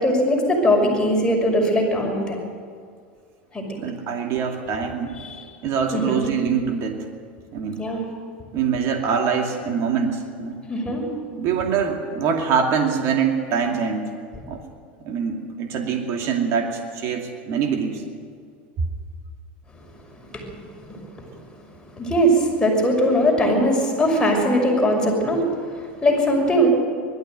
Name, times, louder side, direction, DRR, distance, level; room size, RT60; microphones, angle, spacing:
voice 1, 0.0-2.4 3.5-3.6 5.2-5.4 5.9-6.2 7.8-8.0 10.7-11.0 20.2-20.5 20.8-21.2 22.0-26.7, equal, 15° left, -1 dB, 6.1 m, -20 dB
voice 2, 3.7-5.2 5.6-7.1 7.5-7.8 8.5-10.6 11.3-14.1 14.5-14.6 15.0-18.0, right 6 dB, 55° right, 2 dB, 2.5 m, -24 dB
20.5 x 13.5 x 9.4 m, 2.1 s
hypercardioid pair, 100°, 6 cm